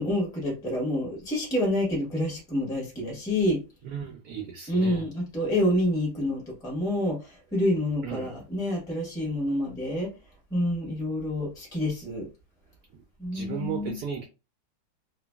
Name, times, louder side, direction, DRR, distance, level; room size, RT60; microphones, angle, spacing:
voice 1, 0.0-3.6 4.7-10.1 10.5-12.3 13.2-14.0, left 1 dB, 5° left, 0.8 m, -28 dB
voice 2, 3.8-5.0 8.0-8.3 13.3-14.3, right 7 dB, 70° right, 0.9 m, -35 dB
3.0 x 2.5 x 2.2 m
omnidirectional pair, 2.1 m